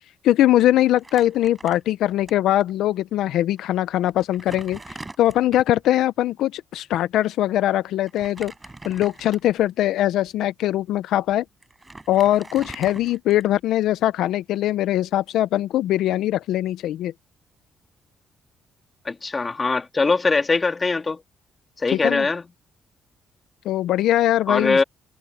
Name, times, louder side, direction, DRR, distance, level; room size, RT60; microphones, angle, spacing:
voice 1, 0.2-8.5 8.8-11.4 12.1-17.1 21.9-22.3 23.6-24.8, left 13 dB, 85° left, 0.5 m, -21 dB
Crumpling crinkling, 1.0-2.3 2.6-2.7 3.6-3.7 4.1-5.9 8.1-9.7 10.3-10.4 11.3-11.4 11.6-13.7, right 2 dB, 15° right, 5.2 m, -41 dB
voice 2, 19.0-21.2 21.8-22.4 24.5-24.8, left 3 dB, 30° left, 2.3 m, -21 dB
cardioid pair, 90°, 0 cm